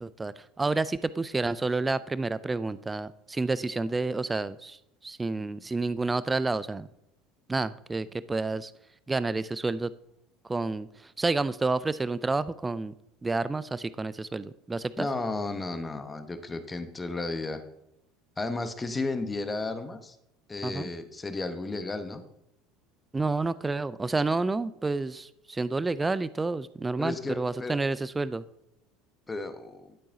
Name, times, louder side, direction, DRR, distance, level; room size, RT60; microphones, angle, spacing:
voice 1, 0.0-4.8 5.0-6.9 7.5-8.7 9.1-9.9 10.5-10.9 11.2-12.9 13.2-15.1 20.6-20.9 23.1-28.4, right 3 dB, 15° right, 17 dB, 0.3 m, -29 dB
voice 2, 15.0-17.6 18.4-20.2 20.5-22.2 27.0-27.8 29.3-30.0, left 3 dB, 20° left, 8 dB, 1.1 m, -33 dB
11.5 x 8.3 x 2.7 m, 0.82 s
figure-of-eight pair, 70°, 0 cm